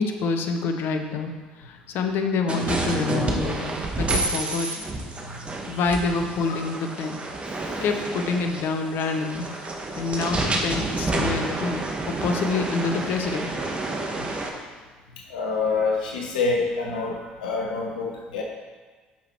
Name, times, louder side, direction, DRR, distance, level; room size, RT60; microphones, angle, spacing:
voice 1, 0.0-1.3 1.6-4.7 5.7-7.2 7.8-9.5 10.0-13.5, left 4 dB, 55° left, 5 dB, 0.9 m, -27 dB
sound 1, 2.5-14.5, right 2 dB, 25° right, 1.4 m, -29 dB
voice 2, 15.3-18.4, left 4 dB, 75° left, -1 dB, 1.2 m, -27 dB
8.6 x 6.0 x 4.5 m, 1.4 s
figure-of-eight pair, 60°, 4 cm